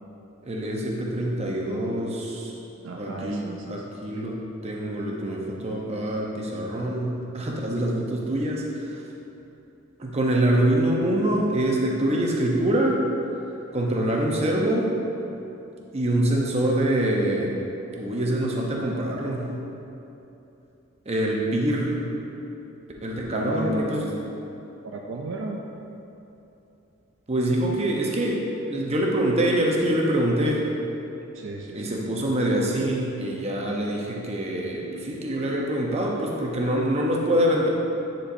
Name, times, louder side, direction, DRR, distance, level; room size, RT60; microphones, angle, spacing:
voice 1, 0.4-2.5 3.0-8.9 10.0-13.0 13.7-14.9 15.9-17.5 18.0-19.5 21.1-22.0 23.0-24.0 27.3-28.4 28.7-30.7 31.7-37.7, right 1 dB, 30° right, -2 dB, 0.7 m, -25 dB
voice 2, 2.8-3.9 23.3-24.2 24.8-25.6 31.3-32.0, right 2 dB, 60° right, 0 dB, 0.4 m, -33 dB
9.7 x 4.4 x 2.6 m, 2.9 s
head